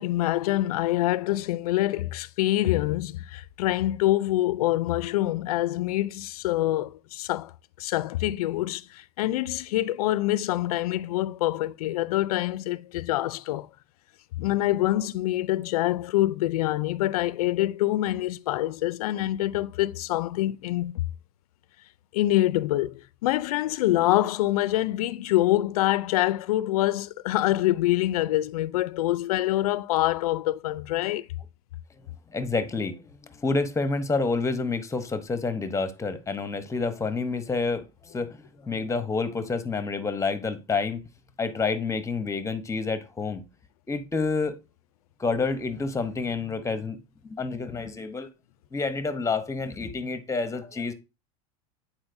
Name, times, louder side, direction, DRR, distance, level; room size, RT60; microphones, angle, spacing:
voice 1, 0.0-7.5 7.8-13.7 14.4-21.0 22.1-31.3, left 15 dB, 80° left, 0.4 m, -25 dB
voice 2, 32.3-41.0 41.4-43.4 43.9-44.6 45.2-47.0 47.2-48.3 48.7-50.9, left 4 dB, 15° left, 0.9 m, -28 dB
8.7 x 4.2 x 2.6 m
hypercardioid pair, 100°, 19 cm